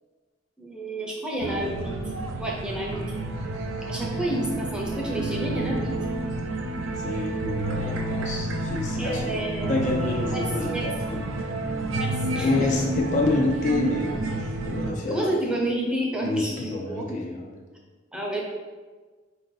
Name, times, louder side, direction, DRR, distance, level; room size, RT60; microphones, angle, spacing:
voice 1, 0.6-1.9 2.4-3.0 3.9-5.9 9.0-9.8 10.3-11.2 11.9-12.7 15.1-17.0 18.1-18.4, right 1 dB, 5° right, -3 dB, 0.6 m, -30 dB
sound 1, 1.4-14.9, right 2 dB, 85° right, 0.5 m, -30 dB
voice 2, 6.9-11.2 12.4-15.3 16.2-17.6, left 2 dB, 40° left, 0 dB, 0.3 m, -28 dB
4.7 x 2.7 x 3.8 m, 1.4 s
head